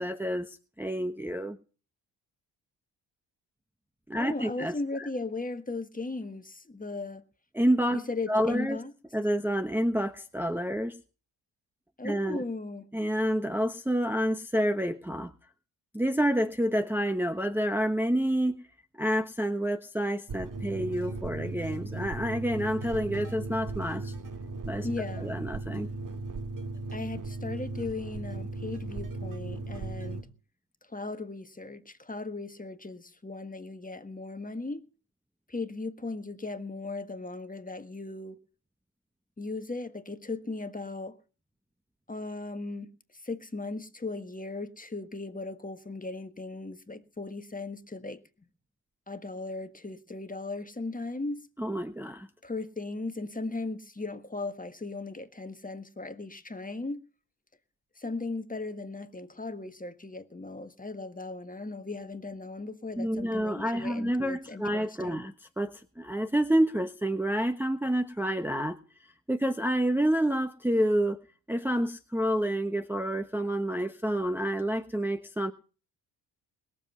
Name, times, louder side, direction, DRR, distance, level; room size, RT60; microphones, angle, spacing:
voice 1, 0.0-1.6 4.1-5.1 7.5-8.0 8.3-8.8 9.1-11.0 12.0-12.4 12.9-15.3 15.9-18.6 18.9-24.1 24.7-24.9 25.2-25.9 51.6-52.3 63.0-68.8 69.3-71.2 71.5-75.5, equal, 5° right, 1.1 m, -28 dB
voice 2, 4.1-7.2 7.9-8.9 12.0-12.9 24.8-25.3 26.9-30.3 30.9-34.8 35.5-38.4 39.4-41.2 42.1-48.2 49.1-51.5 52.4-57.1 58.0-65.3, left 3 dB, 15° left, 1.6 m, -37 dB
sound 1, 20.3-30.2, right 2 dB, 40° right, 2.7 m, -37 dB
21.0 x 7.6 x 5.6 m
supercardioid pair, 55°, 48 cm